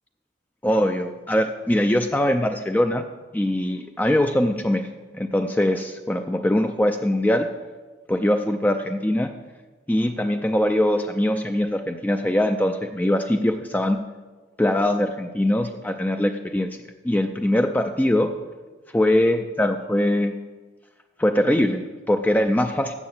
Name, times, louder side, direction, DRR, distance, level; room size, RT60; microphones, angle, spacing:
voice 1, 0.6-3.0 3.3-4.9 5.1-7.5 8.1-9.3 9.9-14.0 14.6-16.7 17.0-18.3 18.9-20.4 21.2-22.9, left 1 dB, 10° left, 7 dB, 0.3 m, -22 dB
7.6 x 7.1 x 7.1 m, 1.3 s
head